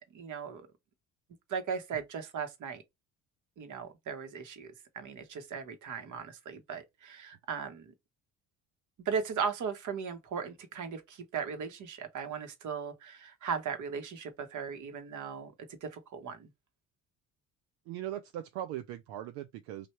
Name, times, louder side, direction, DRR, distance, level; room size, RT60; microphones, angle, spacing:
voice 1, 0.1-0.7 1.5-2.8 3.6-7.9 9.0-15.5 15.8-16.5, right 6 dB, 55° right, 1.3 m, -37 dB
voice 2, 17.9-19.9, right 12 dB, 80° right, 0.6 m, -39 dB
3.3 x 2.6 x 4.4 m
supercardioid pair, 75°, 36 cm